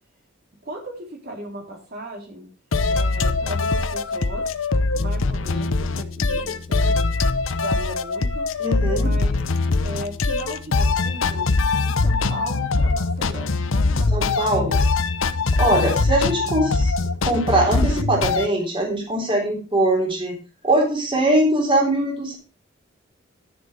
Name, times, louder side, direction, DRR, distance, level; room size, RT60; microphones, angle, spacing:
voice 1, 0.6-2.5 2.9-4.5 4.9-7.0 7.6-8.5 8.9-9.5 9.8-11.5 11.8-14.8 15.7-16.0, equal, 50° right, 0 dB, 3.5 m, -36 dB
sound 1, 2.7-18.5, left 3 dB, 85° left, 0.8 m, -22 dB
voice 2, 8.6-9.1 14.1-14.7 15.6-16.9 17.2-20.4 20.6-22.3, right 1 dB, 25° right, 0 dB, 3.6 m, -21 dB
12.5 x 7.0 x 4.9 m, 0.32 s
head